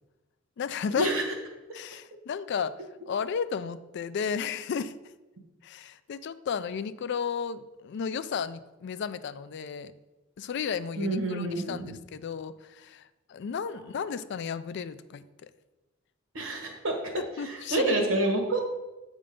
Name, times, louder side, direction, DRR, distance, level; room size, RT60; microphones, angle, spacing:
voice 1, 0.6-1.1 1.7-2.7 3.1-4.9 5.6-9.9 10.4-15.5 17.4-17.9, left 6 dB, 60° left, 13 dB, 0.3 m, -33 dB
voice 2, 11.0-11.9 16.3-17.0 17.4-18.6, right 2 dB, 70° right, 2 dB, 1.4 m, -28 dB
7.6 x 3.7 x 5.1 m, 1.1 s
head